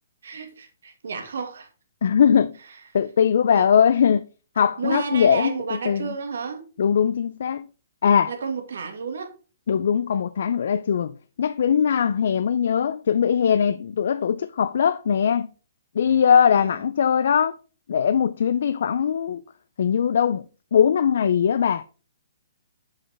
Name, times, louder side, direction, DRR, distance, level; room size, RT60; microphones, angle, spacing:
voice 1, 0.2-1.7 2.7-2.8 3.5-3.7 4.6-6.7 8.3-9.3 12.0-12.2 16.5-16.8, right 5 dB, 75° right, 1.5 m, -32 dB
voice 2, 2.0-2.5 2.9-4.2 4.6-5.5 5.9-6.1 6.8-7.6 8.0-8.3 9.7-15.5 16.0-17.6 17.9-19.4 19.8-20.4 20.7-21.8, left 7 dB, 65° left, 0.3 m, -20 dB
6.4 x 5.6 x 3.3 m
hypercardioid pair, 160°, 0 cm